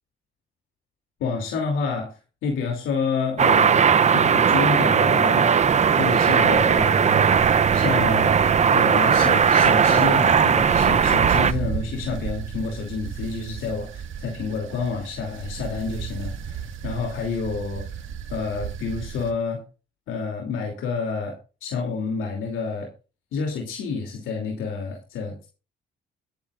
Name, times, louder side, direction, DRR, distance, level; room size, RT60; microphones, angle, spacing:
voice 1, 1.2-5.6 6.0-7.4 7.7-18.0 18.3-19.6 20.1-22.9 23.3-25.5, left 5 dB, 85° left, 2 dB, 2.8 m, -29 dB
sound 1, 3.4-11.5, right 7 dB, 35° right, 0.6 m, -18 dB
sound 2, 5.6-19.3, right 8 dB, 80° right, 1.7 m, -35 dB
22.0 x 10.5 x 2.4 m, 0.34 s
cardioid pair, 90°, 20 cm